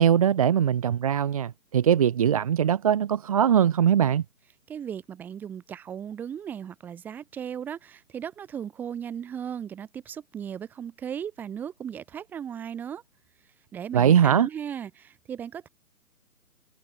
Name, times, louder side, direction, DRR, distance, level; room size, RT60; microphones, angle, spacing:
voice 1, 0.0-4.2 13.9-14.5, right 9 dB, 25° right, 3.2 m, -21 dB
voice 2, 4.7-13.0 13.7-15.7, right 8 dB, 5° right, 2.7 m, -36 dB
hypercardioid pair, 175°, 46 cm